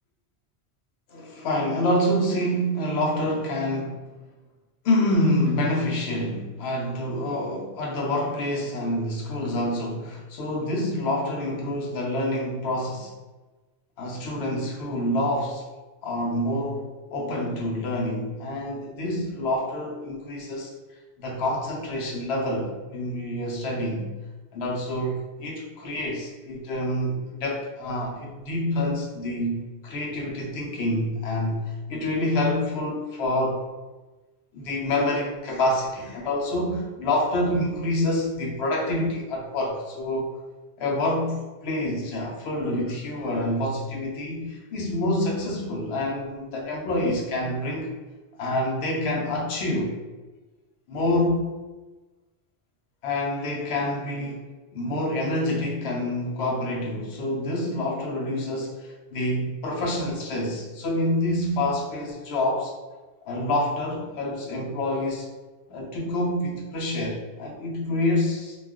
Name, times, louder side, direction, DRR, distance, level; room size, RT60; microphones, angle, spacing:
voice 1, 1.1-4.0 4.8-13.1 14.0-15.6 16.0-20.7 21.2-24.1 24.5-33.6 34.5-40.3 40.8-47.9 48.4-50.0 50.9-51.6 53.0-62.7 63.3-65.3 65.7-68.6, left 1 dB, 75° left, -1 dB, 0.9 m, -27 dB
2.3 x 2.3 x 3.5 m, 1.2 s
omnidirectional pair, 1.1 m